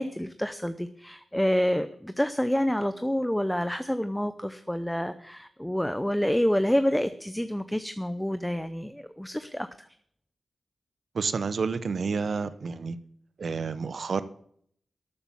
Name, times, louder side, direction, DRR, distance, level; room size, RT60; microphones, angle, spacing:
voice 1, 0.0-9.9, equal, 5° left, 11 dB, 0.7 m, -28 dB
voice 2, 11.1-13.0 13.4-14.2, right 5 dB, 65° right, 13 dB, 0.9 m, -29 dB
12.0 x 8.8 x 7.1 m, 0.65 s
cardioid pair, 75°, 0 cm